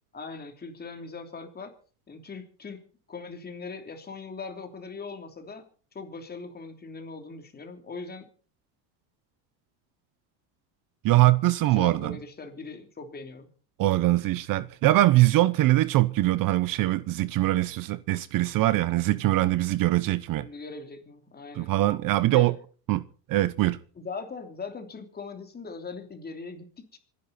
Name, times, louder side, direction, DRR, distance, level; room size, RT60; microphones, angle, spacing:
voice 1, 0.1-1.7 2.1-2.8 3.1-5.6 5.9-8.3 11.6-13.5 20.4-22.0 22.3-22.5 24.0-27.0, left 4 dB, 20° left, 3.2 m, -40 dB
voice 2, 11.0-12.2 13.8-20.5 21.6-22.5 22.9-23.8, right 16 dB, 50° right, 0.8 m, -22 dB
25.5 x 11.0 x 4.2 m
supercardioid pair, 125°, 43 cm